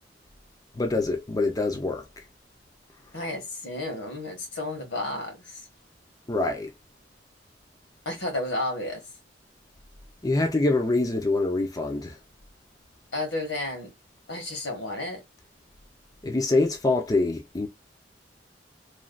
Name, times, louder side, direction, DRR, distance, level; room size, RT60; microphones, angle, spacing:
voice 1, 0.7-2.3 6.3-6.7 10.2-12.2 16.2-17.7, left 2 dB, 20° left, 0.5 m, -25 dB
voice 2, 3.1-5.7 8.0-9.0 13.1-13.9 14.3-15.2, left 2 dB, 80° left, 1.5 m, -32 dB
3.1 x 2.3 x 2.4 m
head